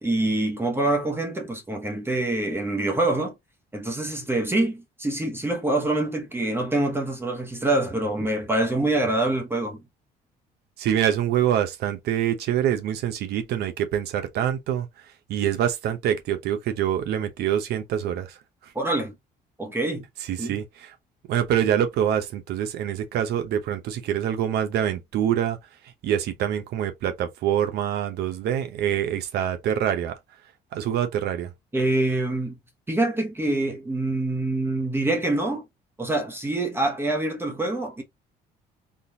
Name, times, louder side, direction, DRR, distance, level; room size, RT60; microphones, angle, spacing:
voice 1, 0.0-3.3 3.7-9.8 18.7-19.1 19.6-20.1 20.4-20.6 31.7-32.6 32.9-35.6 36.0-38.0, right 2 dB, 15° right, 0.9 m, -25 dB
voice 2, 10.8-14.9 15.3-18.4 20.2-20.9 21.3-25.6 26.0-30.1 30.7-31.5, right 10 dB, 75° right, 0.8 m, -25 dB
3.7 x 2.4 x 2.8 m
cardioid pair, 110°, 17 cm